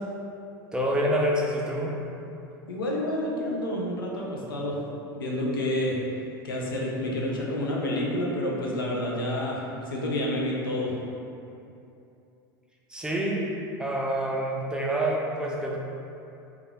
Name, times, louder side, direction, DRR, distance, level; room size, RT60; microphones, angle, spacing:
voice 1, 0.7-2.0 12.9-13.5 13.8-15.8, right 1 dB, 5° right, -3 dB, 0.4 m, -27 dB
voice 2, 2.7-4.8 5.1-5.9 6.4-10.9, left 1 dB, 85° left, -2 dB, 0.5 m, -29 dB
3.1 x 2.3 x 2.3 m, 2.7 s
hypercardioid pair, 85°, 11 cm